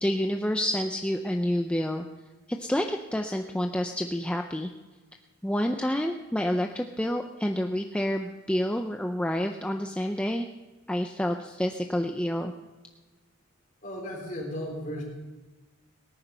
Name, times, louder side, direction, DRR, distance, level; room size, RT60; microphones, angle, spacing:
voice 1, 0.0-2.0 2.5-4.7 5.4-10.5 10.9-12.5, equal, 5° left, 4 dB, 0.5 m, -28 dB
voice 2, 13.8-15.0, equal, 40° left, 0 dB, 3.4 m, -35 dB
18.0 x 10.0 x 5.5 m, 1.2 s
head